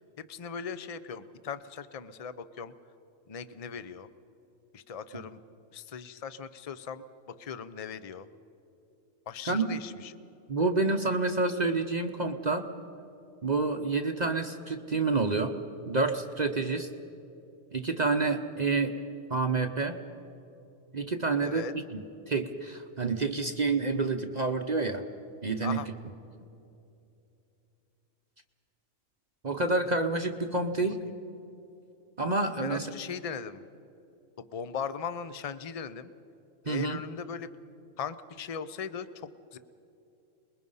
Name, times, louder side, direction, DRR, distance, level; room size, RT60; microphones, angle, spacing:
voice 1, 0.2-2.7 3.3-4.1 4.7-5.4 5.7-7.0 7.4-8.3 9.3-10.2 21.4-21.7 25.6-25.9 30.8-30.9 32.6-33.6 34.4-36.1 36.7-37.5 38.0-39.6, left 6 dB, 35° left, 13 dB, 0.6 m, -39 dB
voice 2, 9.5-9.8 10.5-12.7 13.4-15.5 15.9-16.9 17.7-19.0 19.3-20.0 20.9-21.6 21.9-25.0 25.4-25.8 29.4-31.0 32.2-32.9 36.7-37.0, right 3 dB, 35° right, 5 dB, 0.9 m, -28 dB
28.0 x 21.5 x 5.5 m, 2.8 s
omnidirectional pair, 1.4 m